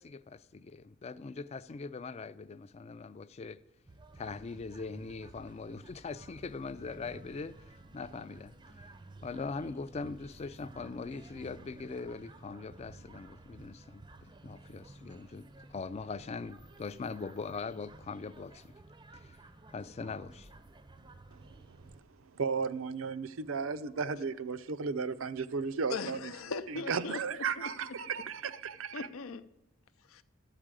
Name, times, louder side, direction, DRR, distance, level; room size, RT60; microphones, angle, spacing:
voice 1, 0.0-3.6 4.1-8.8 9.2-18.7 19.1-19.4 19.7-20.5, left 4 dB, 30° left, 0.3 m, -41 dB
sound 1, 3.9-22.0, right 2 dB, 20° right, 0.5 m, -54 dB
voice 2, 22.3-26.3 26.7-29.1, right 5 dB, 70° right, 0.5 m, -35 dB
voice 3, 25.9-27.7 28.9-29.5 30.1-30.2, left 4 dB, 85° left, 0.6 m, -39 dB
13.0 x 4.9 x 8.9 m
head